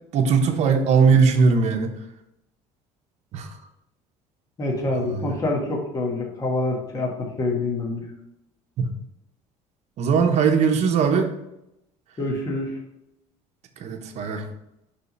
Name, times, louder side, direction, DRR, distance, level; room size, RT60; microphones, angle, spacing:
voice 1, 0.1-1.9 3.3-3.5 4.9-5.3 8.8-8.9 10.0-11.3 13.8-14.5, right 5 dB, 55° right, 5 dB, 0.9 m, -20 dB
voice 2, 4.6-8.1 12.2-12.7, left 2 dB, 30° left, -1 dB, 1.4 m, -26 dB
5.4 x 3.6 x 5.3 m, 0.85 s
cardioid pair, 110°, 13 cm